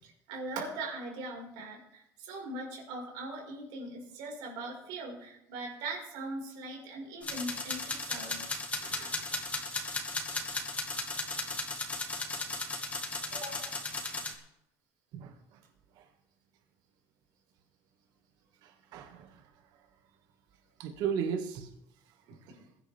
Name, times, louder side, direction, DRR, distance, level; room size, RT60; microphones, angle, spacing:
voice 1, 0.0-8.4 8.8-9.2 13.3-13.7 22.6-22.7, right 2 dB, 85° right, -1 dB, 5.3 m, -41 dB
sound 1, 7.2-14.3, left 3 dB, 20° left, 1.9 m, -36 dB
voice 2, 15.1-15.6 16.0-16.1 18.6-19.5 20.8-21.7, right 7 dB, 65° right, 4 dB, 2.0 m, -36 dB
22.0 x 10.0 x 3.6 m, 0.80 s
cardioid pair, 135°, 8 cm